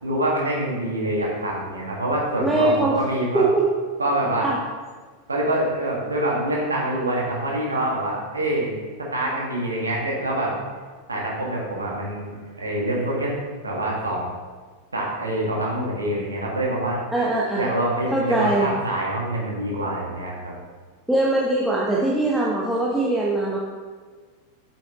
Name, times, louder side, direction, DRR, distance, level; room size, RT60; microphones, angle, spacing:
voice 1, 0.0-3.5 4.0-4.5 5.3-8.8 9.1-10.5 11.1-13.3 13.6-14.3 14.9-17.0 17.5-20.5, right 1 dB, 75° right, -3 dB, 1.8 m, -25 dB
voice 2, 2.4-3.0 3.3-3.6 4.4-4.6 17.1-17.7 18.1-18.7 21.1-23.6, right 2 dB, ahead, -6 dB, 0.9 m, -21 dB
7.4 x 6.0 x 3.0 m, 1.5 s
figure-of-eight pair, 90°, 0 cm